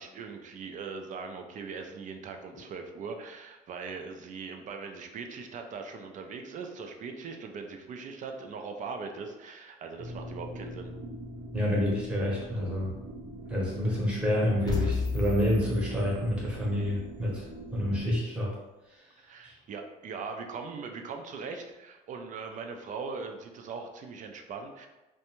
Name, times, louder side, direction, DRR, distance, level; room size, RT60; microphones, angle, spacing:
voice 1, 0.0-10.9 19.2-24.9, right 5 dB, 50° right, 4 dB, 0.4 m, -40 dB
sound 1, 10.0-18.0, right 1 dB, 90° right, 0.8 m, -43 dB
voice 2, 11.5-12.9 13.5-17.4 17.7-18.5 19.4-19.5, equal, 5° right, -5 dB, 0.9 m, -28 dB
sound 2, 14.7-16.7, left 4 dB, 25° left, 0.5 m, -33 dB
2.5 x 2.2 x 2.9 m, 1.0 s
cardioid pair, 110°, 17 cm